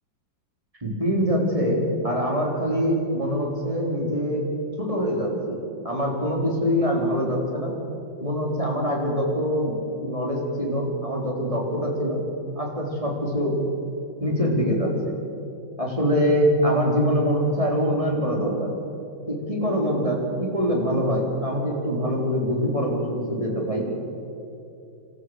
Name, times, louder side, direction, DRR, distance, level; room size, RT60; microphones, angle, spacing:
voice 1, 0.8-4.4 4.8-5.6 5.8-7.7 8.2-9.7 10.0-12.2 12.6-13.5 14.2-15.1 15.8-18.7 19.3-23.9, equal, 15° right, -1 dB, 3.8 m, -24 dB
27.0 x 13.0 x 7.9 m, 2.7 s
omnidirectional pair, 2.1 m